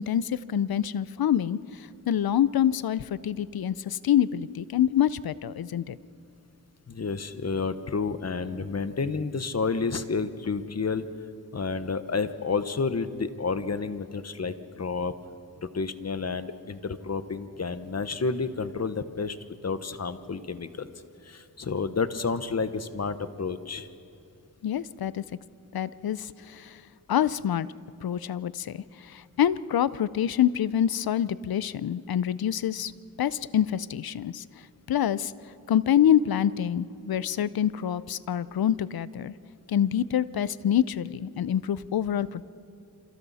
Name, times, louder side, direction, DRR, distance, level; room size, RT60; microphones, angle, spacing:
voice 1, 0.0-6.0 24.6-25.2 25.7-26.8 27.1-27.7 28.0-32.9 33.2-34.4 34.9-35.3 35.7-39.3 39.7-42.4, left 10 dB, 80° left, 18 dB, 0.6 m, -26 dB
voice 2, 6.9-11.0 11.5-15.1 15.6-19.4 19.6-20.9 21.2-23.9, left 4 dB, 45° left, 11 dB, 1.1 m, -30 dB
27.0 x 27.0 x 4.2 m, 2.7 s
wide cardioid pair, 70°, 36 cm